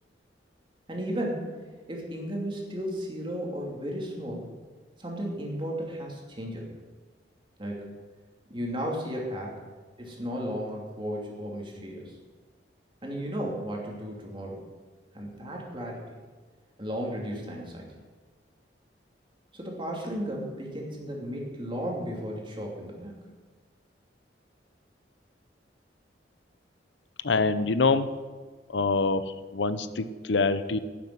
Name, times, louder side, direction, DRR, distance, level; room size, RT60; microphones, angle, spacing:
voice 1, 0.9-1.6 1.9-4.5 5.0-6.7 7.6-7.9 8.5-9.6 10.0-12.1 13.0-14.6 15.1-16.1 16.8-17.9 19.5-23.2, equal, 30° right, -1 dB, 2.8 m, -34 dB
voice 2, 27.2-28.1 28.7-30.8, left 3 dB, 85° left, 13 dB, 0.7 m, -25 dB
11.5 x 7.5 x 9.5 m, 1.4 s
head